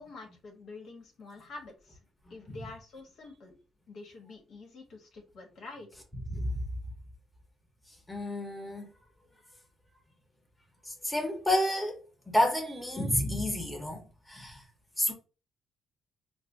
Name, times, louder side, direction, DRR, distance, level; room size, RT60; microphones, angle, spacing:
voice 1, 0.0-2.0 2.3-3.5 3.9-5.9, left 3 dB, 70° left, 1.4 m, -47 dB
voice 2, 8.1-8.9 10.9-12.0 12.3-14.0 14.3-14.6 15.0-15.1, left 1 dB, 10° left, 1.1 m, -30 dB
4.7 x 2.2 x 2.7 m
cardioid pair, 90°, 0 cm